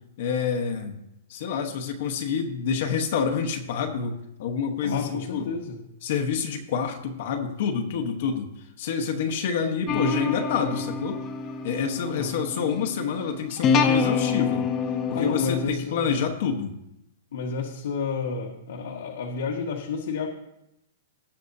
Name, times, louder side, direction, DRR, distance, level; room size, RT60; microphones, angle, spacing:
voice 1, 0.2-0.9 1.3-5.5 6.0-8.5 8.8-11.2 11.6-14.7 15.1-16.7, left 6 dB, 50° left, 4 dB, 1.0 m, -27 dB
voice 2, 4.8-5.8 12.0-12.4 15.1-16.2 17.3-20.3, left 5 dB, 70° left, -1 dB, 1.4 m, -31 dB
sound 1, 9.9-15.6, left 5 dB, 20° left, 0.8 m, -27 dB
18.5 x 6.4 x 2.7 m, 0.84 s
hypercardioid pair, 170°, 0 cm